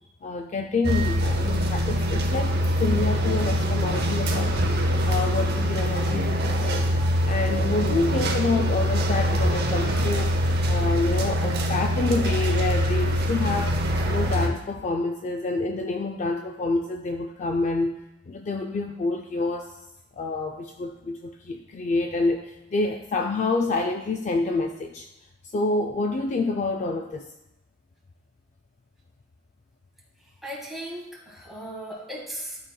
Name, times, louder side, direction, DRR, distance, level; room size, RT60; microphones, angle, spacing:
voice 1, 0.2-4.5 5.0-6.9 7.3-10.3 10.6-13.7 14.1-17.9 18.3-19.7 20.1-25.1 25.5-27.3, left 3 dB, 40° left, 4 dB, 0.4 m, -27 dB
sound 1, 0.8-14.5, equal, 55° right, 0.7 m, -24 dB
voice 2, 30.4-32.6, right 1 dB, ahead, -5 dB, 1.7 m, -37 dB
11.5 x 4.1 x 2.2 m, 0.93 s
head